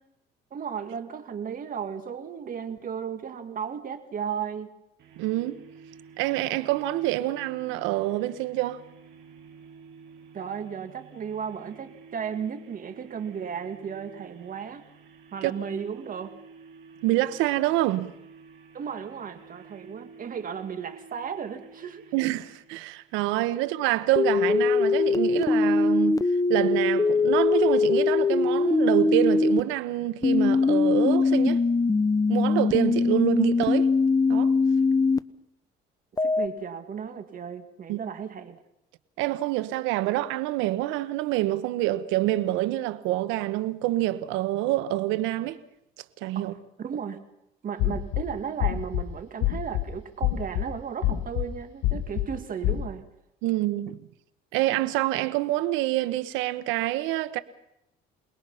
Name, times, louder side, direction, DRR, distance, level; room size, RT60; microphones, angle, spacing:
voice 1, 0.5-4.7 10.3-14.8 15.3-16.3 18.7-22.0 36.2-38.6 46.4-47.2 47.6-53.0, right 7 dB, 45° right, 2.3 m, -35 dB
sound 1, 5.0-23.3, right 5 dB, 65° right, 7.2 m, -51 dB
voice 2, 5.2-5.6 6.2-8.8 15.4-15.5 17.0-18.1 22.1-26.2 26.5-31.6 32.3-33.9 34.3-34.5 37.9-38.0 39.2-45.6 46.2-46.5 53.4-54.0 54.5-57.4, right 16 dB, 90° right, 1.2 m, -26 dB
sound 2, 24.2-29.6 30.2-35.2 36.2-36.5, left 4 dB, 20° left, 0.8 m, -22 dB
sound 3, 47.8-48.2 48.6-49.0 49.4-49.8 50.2-50.6 51.0-51.4 51.8-52.2 52.6-52.8, left 14 dB, 90° left, 2.4 m, -25 dB
27.5 x 20.0 x 5.8 m
cardioid pair, 100°, 19 cm